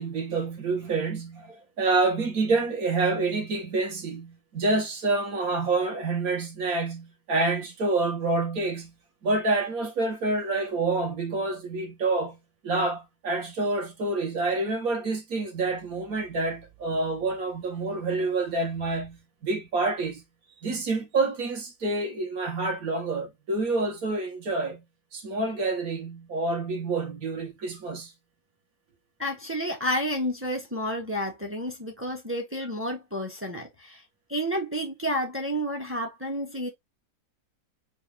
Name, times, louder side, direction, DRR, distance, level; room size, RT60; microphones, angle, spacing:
voice 1, 0.0-8.9 9.2-12.4 12.6-20.2 20.6-24.8 25.1-28.1, right 3 dB, 55° right, 1.6 m, -27 dB
voice 2, 29.2-34.0 34.3-36.7, equal, 10° right, 0.9 m, -30 dB
4.6 x 2.4 x 3.5 m
omnidirectional pair, 2.0 m